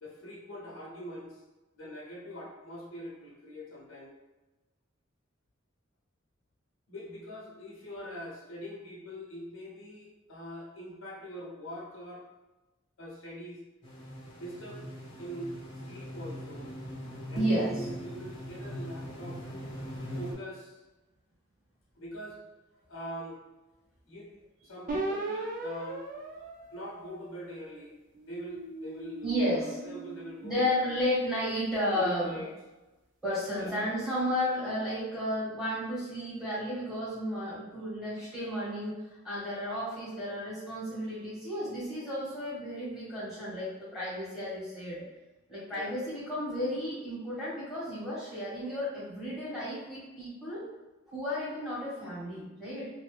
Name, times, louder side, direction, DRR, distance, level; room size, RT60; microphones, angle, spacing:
voice 1, 0.0-1.4 1.7-4.2 6.9-12.3 13.0-13.6 14.3-14.9 15.2-15.6 15.8-16.7 17.3-19.4 20.1-20.8 21.9-22.4 22.9-23.4 24.0-24.4 24.6-26.0 26.7-27.9 28.2-31.0 31.9-32.5 33.6-33.9 45.7-45.9, equal, 80° left, -4 dB, 0.8 m, -43 dB
sound 1, 13.8-20.3, equal, 25° left, 0.8 m, -41 dB
voice 2, 17.3-17.7 29.2-29.8 30.4-32.4 33.2-39.0 39.2-45.0 45.5-50.6 51.1-52.9, equal, ahead, -10 dB, 1.4 m, -33 dB
sound 2, 24.9-27.6 28.2-30.6, right 2 dB, 40° right, 0.4 m, -38 dB
2.7 x 2.6 x 3.2 m, 1.1 s
head